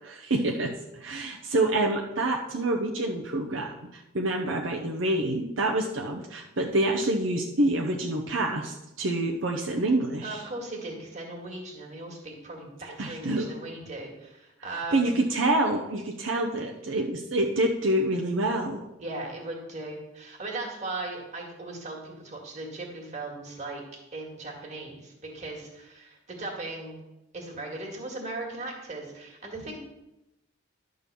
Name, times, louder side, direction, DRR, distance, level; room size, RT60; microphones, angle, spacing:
voice 1, 0.2-0.7 1.0-10.4 13.0-13.5 14.9-18.8, right 1 dB, 75° right, 1 dB, 0.8 m, -27 dB
voice 2, 10.2-15.2 19.0-23.8 24.1-27.0 27.3-29.8, right 2 dB, 35° right, -1 dB, 1.9 m, -38 dB
11.0 x 3.9 x 6.8 m, 0.93 s
head